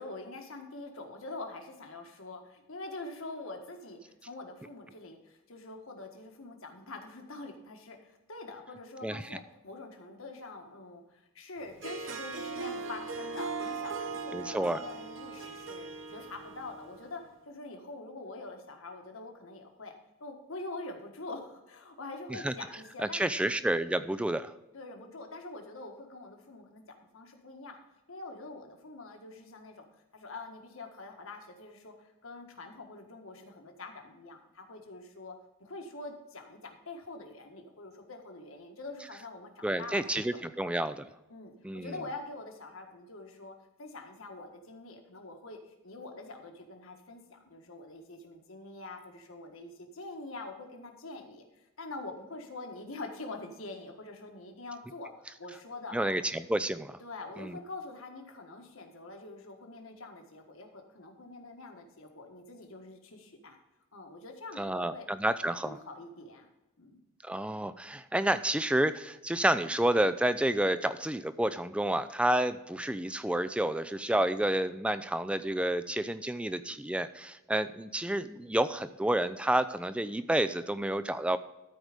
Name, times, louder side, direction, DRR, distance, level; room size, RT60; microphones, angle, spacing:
voice 1, 0.0-23.5 23.9-24.1 24.7-26.8 27.1-27.8 28.1-29.8 30.1-35.3 35.6-40.0 40.3-40.7 41.3-56.2 57.0-63.6 63.9-65.1 65.6-66.5 66.8-67.0, left 2 dB, 75° left, 3 dB, 1.6 m, -45 dB
voice 2, 9.0-9.4 14.3-14.8 22.3-22.5 23.0-24.5 39.6-41.1 41.6-41.9 55.9-57.0 57.4-57.6 64.6-65.8 67.2-81.4, right 1 dB, 5° right, 13 dB, 0.4 m, -30 dB
Harp, 11.7-17.1, right 4 dB, 60° right, 1.0 m, -39 dB
13.0 x 4.8 x 5.1 m, 1.0 s
head